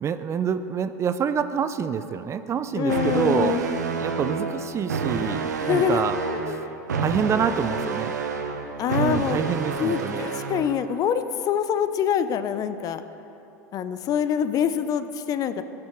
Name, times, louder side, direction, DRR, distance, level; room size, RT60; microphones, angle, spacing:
voice 1, 0.0-3.7 4.0-6.2 7.0-8.1 9.0-10.3, right 7 dB, 30° right, 11 dB, 0.5 m, -26 dB
voice 2, 2.7-3.6 5.6-6.0 6.5-6.7 8.8-9.4 9.8-13.0 13.7-15.6, left 8 dB, 40° left, 11 dB, 0.6 m, -25 dB
sound 1, 2.9-10.9, right 5 dB, 85° right, 0.9 m, -29 dB
17.0 x 6.0 x 5.0 m, 3.0 s
hypercardioid pair, 85°, 9 cm